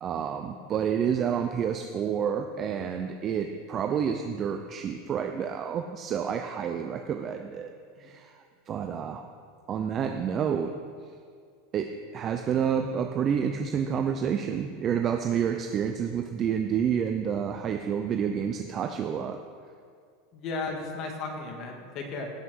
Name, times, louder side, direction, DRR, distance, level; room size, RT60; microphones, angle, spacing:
voice 1, 0.0-7.7 8.0-8.3 8.7-9.2 9.7-10.7 11.7-19.4, right 8 dB, 30° right, 5 dB, 0.6 m, -29 dB
voice 2, 20.3-22.3, left 3 dB, 40° left, 2 dB, 1.9 m, -35 dB
17.0 x 5.8 x 6.3 m, 2.1 s
supercardioid pair, 150°, 0 cm